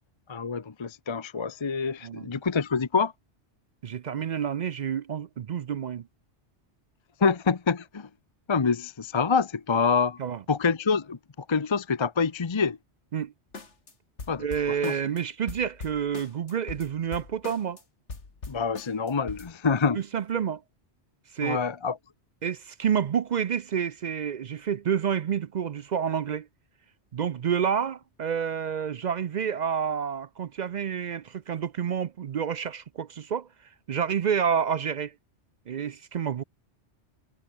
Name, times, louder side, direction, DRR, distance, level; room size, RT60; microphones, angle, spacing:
voice 1, 0.3-3.1 7.2-8.1 8.5-10.2 10.5-12.8 14.3-15.0 18.5-20.0 21.4-22.0, left 5 dB, 30° left, 0.7 m, -26 dB
voice 2, 3.8-6.1 10.2-10.4 13.1-13.3 14.4-17.8 19.9-20.6 21.3-21.6 22.4-26.5 27.1-33.5 33.9-35.1 35.7-36.4, right 8 dB, 55° right, 0.5 m, -29 dB
sound 1, 13.5-13.9 14.2-15.2 15.5-17.8 18.1-19.5, left 3 dB, 85° left, 2.9 m, -41 dB
omnidirectional pair, 1.2 m